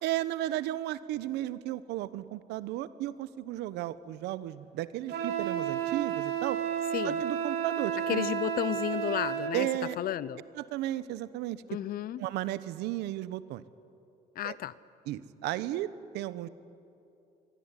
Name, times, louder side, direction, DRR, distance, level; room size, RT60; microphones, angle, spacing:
voice 1, 0.0-6.6 7.0-8.3 9.5-10.0 10.6-11.6 12.2-13.6 14.4-14.6 15.1-16.5, right 14 dB, 85° right, 15 dB, 1.0 m, -34 dB
Wind instrument woodwind instrument, 5.1-9.6, right 8 dB, 70° right, 3.0 m, -32 dB
voice 2, 8.1-9.7 10.0-10.4 11.7-12.2 14.4-14.7, left 12 dB, 60° left, 18 dB, 0.8 m, -32 dB
24.5 x 22.5 x 9.9 m, 2.7 s
cardioid pair, 110°, 17 cm